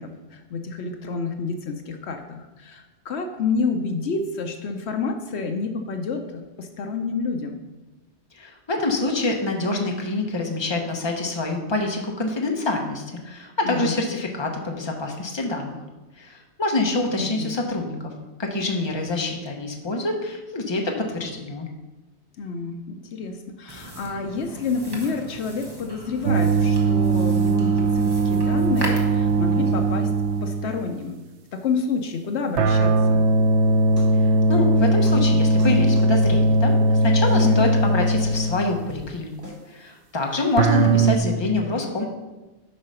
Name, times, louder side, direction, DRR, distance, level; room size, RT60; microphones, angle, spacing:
voice 1, 0.0-7.6 13.6-14.0 17.1-17.6 22.4-30.1 30.4-31.2 31.5-33.2 37.3-37.6, left 4 dB, 75° left, 6 dB, 1.0 m, -29 dB
voice 2, 8.3-15.8 16.2-18.1 18.4-21.7 34.5-39.3 39.7-42.0, left 2 dB, 25° left, 2 dB, 1.0 m, -26 dB
sound 1, 23.7-30.0, right 1 dB, 20° right, 1.2 m, -37 dB
sound 2, 26.2-30.9 32.6-38.9 40.6-41.2, right 2 dB, 90° right, 0.9 m, -19 dB
sound 3, 34.0-34.1 34.5-34.6 35.1-35.2 35.6-35.7 36.0-36.4 36.7-36.8 37.3-37.4 37.8-37.9 38.2-38.4 38.9-39.1 39.4-39.6, equal, 65° right, 3.1 m, -43 dB
8.5 x 4.8 x 5.6 m, 1.1 s
omnidirectional pair, 1.1 m